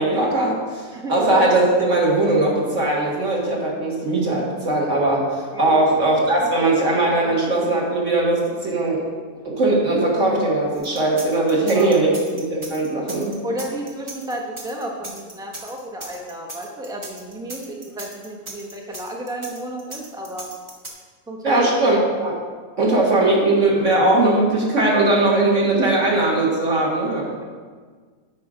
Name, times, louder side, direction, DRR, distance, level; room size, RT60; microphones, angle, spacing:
voice 1, 0.0-9.0 9.5-13.4 21.4-22.4 22.8-27.3, right 2 dB, 45° right, -3 dB, 1.9 m, -19 dB
voice 2, 5.5-6.1 6.4-6.7 9.4-9.6 11.7-12.0 13.4-20.5 21.3-21.6, right 1 dB, 5° right, 0 dB, 0.6 m, -33 dB
sound 1, 10.7-20.9, right 1 dB, 20° right, 1.1 m, -37 dB
8.8 x 5.3 x 4.9 m, 1.5 s
omnidirectional pair, 1.8 m